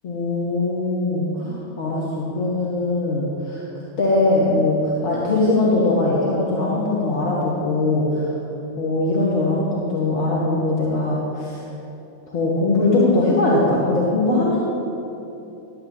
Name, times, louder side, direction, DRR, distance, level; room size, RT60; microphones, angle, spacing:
voice 1, 0.0-3.6 4.0-8.3 8.8-11.6 12.3-14.6, left 2 dB, 45° left, -4 dB, 1.5 m, -21 dB
10.5 x 8.6 x 4.0 m, 2.9 s
figure-of-eight pair, 90°, 0 cm